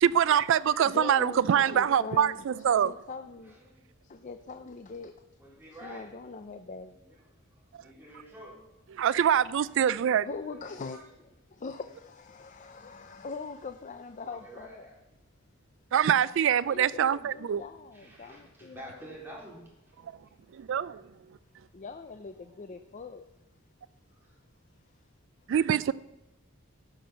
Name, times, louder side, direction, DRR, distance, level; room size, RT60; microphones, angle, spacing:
voice 1, 0.0-2.9 9.0-10.3 15.9-17.6 20.5-21.0 25.5-25.9, right 9 dB, 65° right, 0.3 m, -24 dB
voice 2, 0.8-2.4 2.7-3.6 4.0-5.1 5.7-7.2 10.2-11.0 11.5-14.9 16.7-19.1 21.7-23.2, left 4 dB, 35° left, 0.5 m, -42 dB
voice 3, 3.4-3.9 5.4-6.1 6.9-7.0 7.8-8.6 10.5-11.0 12.7-12.9 13.2-13.3 14.2-15.0 17.9-19.6 19.9-20.0 21.8-21.9 22.3-22.9 24.2-24.3, right 1 dB, 10° right, 3.9 m, -49 dB
16.5 x 6.1 x 5.7 m
head